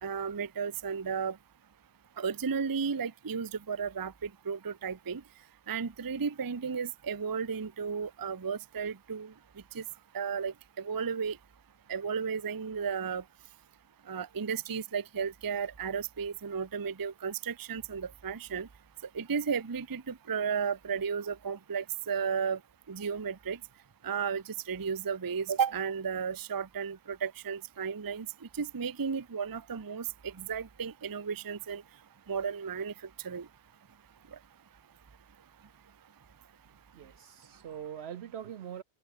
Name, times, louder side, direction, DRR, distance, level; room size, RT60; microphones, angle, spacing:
voice 1, 0.0-1.4 2.2-5.2 5.7-9.3 9.7-9.8 10.1-11.4 11.9-13.2 14.1-18.7 19.1-22.6 22.9-23.6 24.0-28.3 28.6-31.8 32.3-32.9 33.2-33.5, right 6 dB, 25° right, 0.5 m, -34 dB
voice 2, 36.9-38.8, right 9 dB, 60° right, 0.8 m, -42 dB
omnidirectional pair, 1.4 m